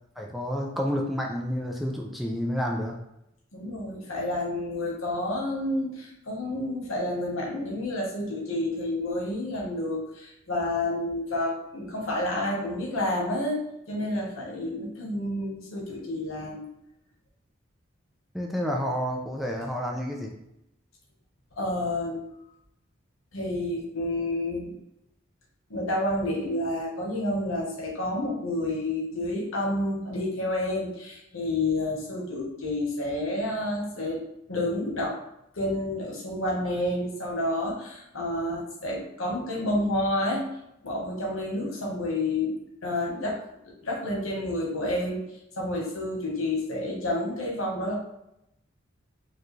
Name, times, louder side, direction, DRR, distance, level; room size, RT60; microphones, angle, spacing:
voice 1, 0.2-3.0 18.3-20.3, equal, ahead, -1 dB, 0.4 m, -29 dB
voice 2, 3.5-13.6 13.9-16.7 21.6-22.2 23.3-24.7 25.7-35.2 35.5-40.4 40.8-42.5 42.8-43.4 43.8-45.3 45.6-48.0, left 1 dB, 85° left, -3 dB, 1.3 m, -29 dB
4.6 x 2.4 x 3.2 m, 0.82 s
head